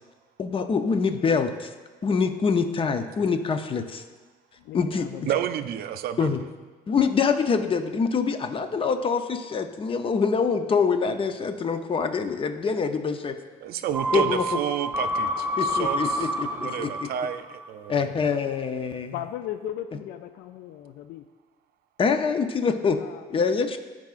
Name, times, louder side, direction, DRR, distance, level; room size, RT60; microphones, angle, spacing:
voice 1, 0.4-1.7 2.0-4.0 4.7-5.1 6.2-6.4 6.9-13.3 14.1-14.4 15.6-17.1 17.9-19.1 22.0-23.0 23.3-23.8, left 5 dB, 30° left, 8 dB, 0.6 m, -25 dB
voice 2, 4.6-5.4 19.1-21.3 22.7-23.3, left 11 dB, 75° left, 9 dB, 0.4 m, -37 dB
voice 3, 5.3-6.4 13.6-18.2, right 10 dB, 65° right, 9 dB, 0.5 m, -31 dB
sound 1, 13.9-17.7 18.0-18.1, equal, 10° right, 0.4 m, -28 dB
14.0 x 4.8 x 2.5 m, 1.3 s
cardioid pair, 110°, 17 cm